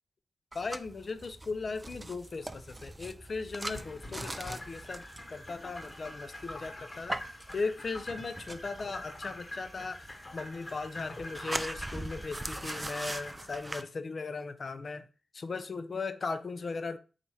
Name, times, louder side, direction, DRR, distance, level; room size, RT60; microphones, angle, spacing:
voice 1, 0.5-7.2 7.5-10.1 10.3-15.1 15.3-17.0, left 4 dB, 55° left, 0.4 m, -37 dB
sound 1, 0.5-13.8, right 1 dB, 25° right, 0.4 m, -42 dB
sound 2, 3.6-13.3, left 1 dB, 35° left, 1.3 m, -46 dB
3.1 x 2.4 x 4.1 m
supercardioid pair, 45°, 0 cm